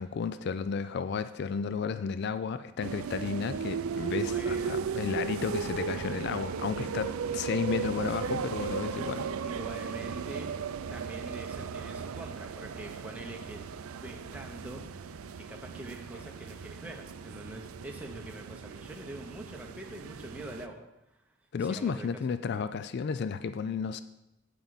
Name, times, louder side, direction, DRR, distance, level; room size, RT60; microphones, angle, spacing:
voice 1, 0.0-9.3 21.5-24.0, left 6 dB, 50° left, 12 dB, 0.3 m, -33 dB
sound 1, 2.8-20.7, right 6 dB, 85° right, 0.4 m, -36 dB
voice 2, 4.2-4.8 9.4-10.5 10.9-21.2 21.6-22.1, right 1 dB, 5° right, 1 dB, 0.8 m, -45 dB
8.4 x 8.0 x 4.0 m, 0.91 s
head